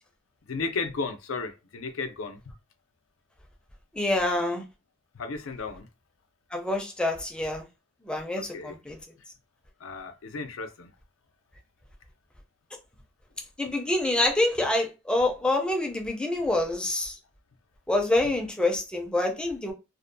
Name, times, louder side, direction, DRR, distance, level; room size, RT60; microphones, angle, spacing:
voice 1, 0.5-2.4 5.1-5.9 8.4-8.8 9.8-10.9, left 4 dB, 85° left, 0.5 m, -34 dB
voice 2, 3.9-4.6 6.5-7.6 8.1-9.0 13.6-17.1 17.9-19.7, left 2 dB, 5° left, 0.5 m, -26 dB
2.5 x 2.1 x 2.6 m
head